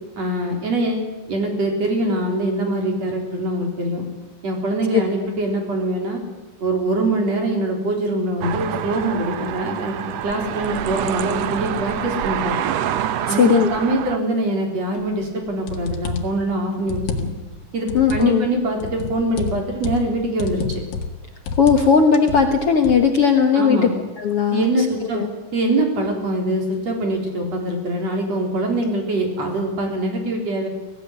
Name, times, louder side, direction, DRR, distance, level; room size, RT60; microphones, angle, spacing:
voice 1, 0.2-4.0 4.4-6.2 6.6-9.9 10.2-12.7 13.3-17.3 17.7-20.6 23.5-23.9 24.5-25.2 25.5-30.7, right 1 dB, 45° right, 2 dB, 4.8 m, -23 dB
sound 1, 8.4-14.2, right 10 dB, 75° right, 1.6 m, -26 dB
voice 2, 13.3-13.7 17.9-18.5 21.6-23.8 24.2-25.3, left 6 dB, 55° left, 4 dB, 1.9 m, -17 dB
sound 2, 15.2-15.3 15.7-16.4 16.8-17.5 17.9-18.3 18.8-20.1 20.4-21.2 21.5-21.9 22.1-23.0, left 4 dB, 75° left, 3.5 m, -29 dB
22.5 x 16.5 x 9.8 m, 1.2 s
omnidirectional pair, 4.1 m